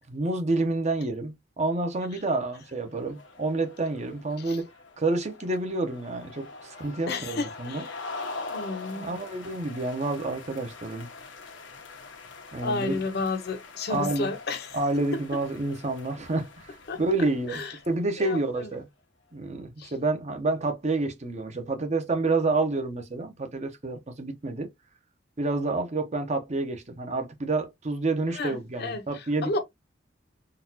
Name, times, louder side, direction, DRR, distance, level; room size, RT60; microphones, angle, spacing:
voice 1, 0.1-4.7 5.0-7.8 8.9-11.1 12.5-13.0 13.9-14.3 14.7-18.9 19.3-24.7 25.4-29.6, right 2 dB, 35° right, 0.7 m, -29 dB
sound 1, 2.5-18.2, left 3 dB, 90° left, 0.9 m, -44 dB
voice 2, 7.1-8.0 8.5-9.3 12.6-14.8 16.9-17.0 17.5-17.8 18.2-18.7 19.8-19.9 28.3-29.6, left 3 dB, 60° left, 0.7 m, -32 dB
3.9 x 2.3 x 2.7 m
head